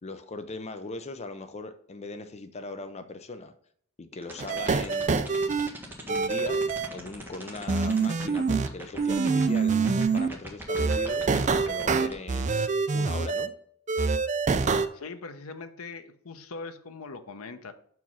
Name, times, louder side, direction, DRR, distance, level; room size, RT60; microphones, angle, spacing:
voice 1, 0.0-3.5 4.0-5.2 6.1-6.6 6.9-11.3 11.6-12.6 12.9-13.5, left 3 dB, 30° left, 9 dB, 0.5 m, -39 dB
sound 1, 4.2-12.1, right 1 dB, 10° right, 1.5 m, -41 dB
sound 2, 4.4-5.7 6.1-6.9 7.7-8.7 9.0-10.3 10.7-13.5 13.9-14.9, right 4 dB, 35° right, 0.5 m, -25 dB
voice 2, 14.9-17.7, left 4 dB, 85° left, 9 dB, 0.8 m, -41 dB
6.1 x 4.7 x 5.5 m, 0.63 s
head